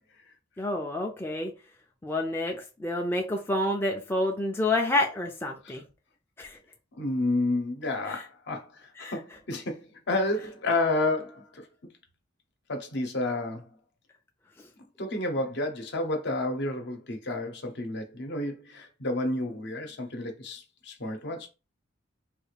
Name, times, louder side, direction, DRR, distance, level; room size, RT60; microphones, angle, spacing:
voice 1, 0.6-1.5 2.0-5.9 6.4-6.6 8.1-8.2 9.0-9.1, left 1 dB, 10° left, 0.4 m, -29 dB
voice 2, 7.0-11.6 12.7-13.6 15.0-21.5, left 2 dB, 60° left, 0.9 m, -30 dB
3.4 x 2.5 x 3.3 m
head